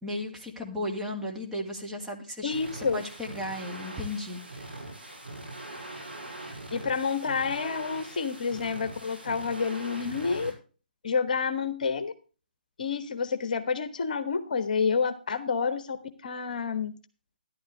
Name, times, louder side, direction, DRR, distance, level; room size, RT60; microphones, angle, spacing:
voice 1, 0.0-4.7, left 1 dB, 5° right, -2 dB, 2.1 m, -35 dB
voice 2, 2.4-3.0 6.7-10.5 11.0-12.1 12.8-16.0 16.2-16.9, left 5 dB, 50° left, 10 dB, 1.3 m, -29 dB
sound 1, 2.5-10.5, right 2 dB, 85° right, 5.9 m, -42 dB
12.5 x 11.5 x 3.3 m, 0.35 s
figure-of-eight pair, 140°, 5 cm